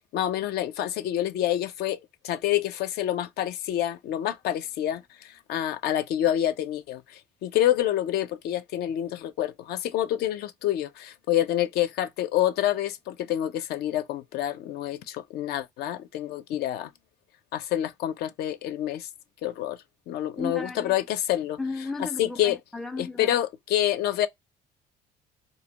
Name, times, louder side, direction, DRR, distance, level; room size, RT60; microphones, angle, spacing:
voice 1, 0.1-2.0 2.2-16.9 17.5-19.1 19.4-19.8 20.1-21.6 22.2-22.6 23.0-24.3, left 12 dB, 70° left, 0.5 m, -27 dB
voice 2, 20.4-21.0 21.6-23.4, left 3 dB, ahead, 0.3 m, -34 dB
2.7 x 2.2 x 2.7 m
cardioid pair, 110°, 17 cm